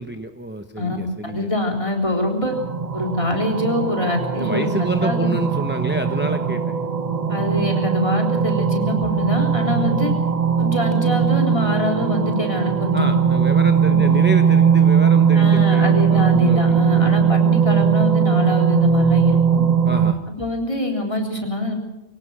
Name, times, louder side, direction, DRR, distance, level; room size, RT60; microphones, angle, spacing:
voice 1, 0.0-1.5 4.4-6.6 12.9-17.3 19.8-20.2, right 1 dB, 10° right, 7 dB, 0.9 m, -28 dB
voice 2, 1.3-2.5 2.9-5.3 7.3-10.1 10.6-13.1 13.9-14.1 15.3-19.6 20.4-21.8, left 1 dB, 30° left, 1 dB, 3.7 m, -24 dB
sound 1, 2.5-20.1, right 7 dB, 40° right, 1.1 m, -19 dB
23.5 x 18.0 x 6.2 m, 0.98 s
omnidirectional pair, 1.1 m